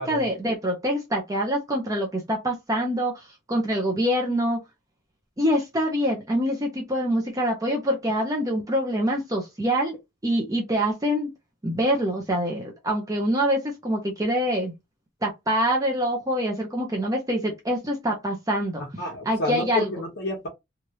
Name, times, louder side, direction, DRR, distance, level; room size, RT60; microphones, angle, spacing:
voice 1, 0.0-4.6 5.4-10.0 10.2-11.3 11.6-14.7 15.2-18.8 19.2-19.9, equal, 15° right, 0.6 m, -25 dB
voice 2, 19.0-20.5, left 2 dB, 50° left, 1.0 m, -30 dB
3.2 x 2.4 x 2.7 m
head